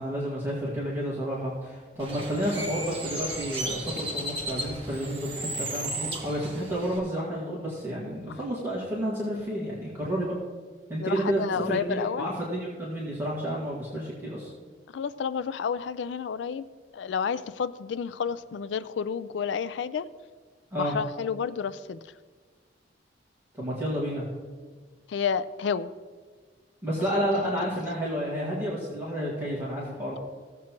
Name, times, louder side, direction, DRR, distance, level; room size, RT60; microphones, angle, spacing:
voice 1, 0.0-10.3 10.9-11.4 11.7-14.5 20.7-21.0 23.5-24.3 26.8-30.2, equal, 15° right, -6 dB, 1.8 m, -30 dB
Bird, 2.0-7.0, right 1 dB, 30° right, 1.6 m, -35 dB
voice 2, 11.0-12.3 14.9-16.7 16.9-20.1 20.8-22.2 25.1-25.9 27.1-27.5, left 6 dB, 75° left, 16 dB, 0.4 m, -31 dB
16.0 x 7.5 x 2.9 m, 1.5 s
head